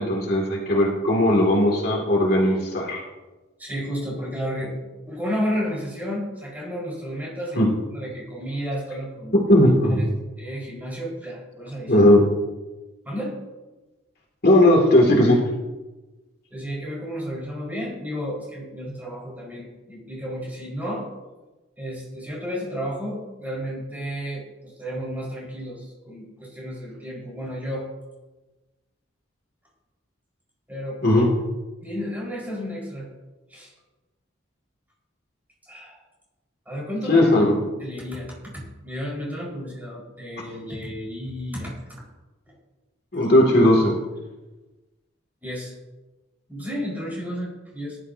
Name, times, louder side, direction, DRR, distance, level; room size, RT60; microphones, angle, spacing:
voice 1, 0.0-3.0 7.6-7.7 9.5-10.1 11.9-12.2 14.4-15.4 31.0-31.3 37.1-37.5 43.1-44.0, left 1 dB, 50° left, -2 dB, 2.5 m, -17 dB
voice 2, 3.6-7.6 7.9-9.6 9.9-10.1 10.4-12.1 13.0-13.4 16.5-21.1 21.8-27.9 30.7-31.3 31.8-33.1 33.5-33.7 35.7-36.0 36.7-37.3 37.8-42.0 42.5-42.6 43.1-43.3 45.4-45.7 46.5-48.0, equal, 10° right, -4 dB, 4.7 m, -32 dB
18.0 x 12.0 x 2.8 m, 1.2 s
head